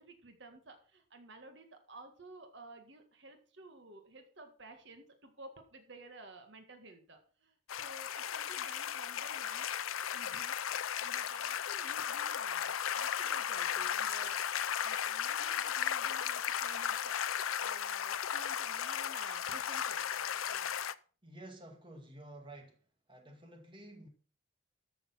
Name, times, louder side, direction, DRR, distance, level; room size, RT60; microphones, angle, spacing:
voice 1, 0.0-9.7 9.9-10.6 11.0-20.7, right 2 dB, 60° right, 1.8 m, -54 dB
sound 1, 7.7-20.9, left 9 dB, 85° left, 0.6 m, -35 dB
voice 2, 21.2-22.8 23.1-24.1, right 1 dB, 25° right, 2.0 m, -51 dB
13.5 x 7.0 x 5.7 m
head